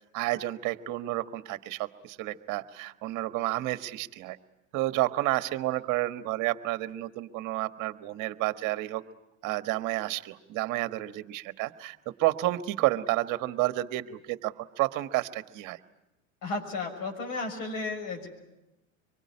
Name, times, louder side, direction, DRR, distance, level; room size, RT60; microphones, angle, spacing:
voice 1, 0.1-4.4 4.7-9.0 9.4-15.8, right 17 dB, 45° right, 11 dB, 1.4 m, -30 dB
voice 2, 16.4-18.3, left 3 dB, 55° left, 3 dB, 6.6 m, -33 dB
25.0 x 23.5 x 9.7 m, 0.95 s
hypercardioid pair, 90°, 42 cm